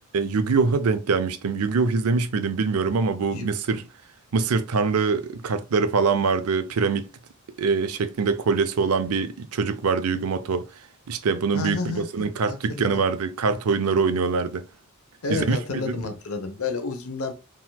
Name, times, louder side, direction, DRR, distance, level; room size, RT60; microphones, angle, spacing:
voice 1, 0.1-3.9 4.3-7.1 7.6-10.7 11.1-14.7 15.3-16.0, right 4 dB, 90° right, 0.5 m, -24 dB
voice 2, 11.5-13.0 15.2-17.3, left 4 dB, 80° left, 0.9 m, -30 dB
4.3 x 3.8 x 2.3 m
head